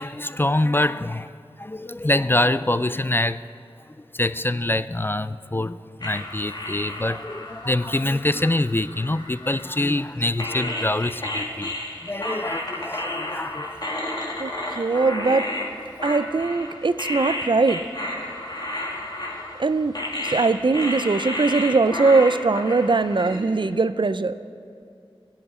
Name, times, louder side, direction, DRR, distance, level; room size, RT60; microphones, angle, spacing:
voice 1, 0.0-1.3 1.6-3.5 4.1-11.7 12.0-13.9, left 1 dB, 20° left, 14 dB, 0.3 m, -25 dB
sound 1, 6.0-10.0 10.4-23.7, left 1 dB, 45° left, 2.1 m, -32 dB
voice 2, 14.8-15.5 16.0-17.8 19.6-24.4, right 3 dB, 55° right, 13 dB, 0.4 m, -21 dB
17.0 x 5.8 x 9.7 m, 2.5 s
wide cardioid pair, 60°, 10 cm